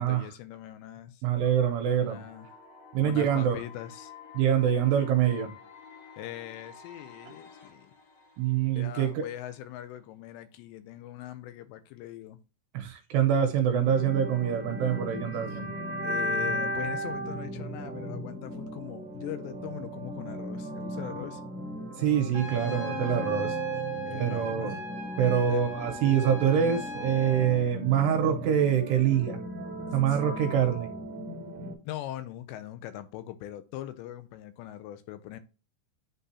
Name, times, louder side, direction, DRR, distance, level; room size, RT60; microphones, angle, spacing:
voice 1, 0.0-1.2 2.1-2.5 3.0-4.1 6.2-7.9 8.7-12.4 16.0-21.4 24.0-24.7 25.5-25.6 30.1-30.2 31.8-35.4, left 12 dB, 85° left, 2.7 m, -41 dB
voice 2, 1.2-2.2 2.9-3.6 4.3-5.5 8.4-9.3 12.7-15.7 22.0-23.6 24.1-24.8 25.2-29.4 29.9-30.9, right 9 dB, 80° right, 2.6 m, -25 dB
sound 1, 2.1-10.1, left 6 dB, 65° left, 2.6 m, -51 dB
sound 2, 13.8-31.7, right 1 dB, 5° right, 1.2 m, -36 dB
Trumpet, 22.3-27.6, left 2 dB, 25° right, 2.2 m, -39 dB
11.0 x 3.8 x 2.7 m
omnidirectional pair, 5.3 m